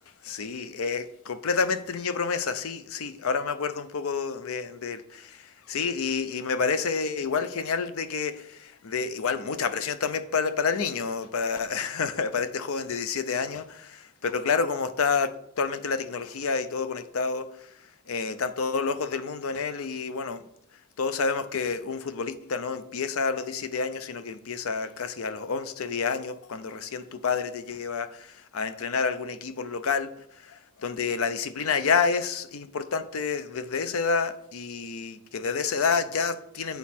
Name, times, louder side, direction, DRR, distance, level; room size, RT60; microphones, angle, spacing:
voice 1, 0.2-5.4 5.7-17.5 18.1-20.4 21.0-30.1 30.4-36.8, left 5 dB, 70° left, 0.5 m, -29 dB
8.0 x 4.1 x 4.3 m
head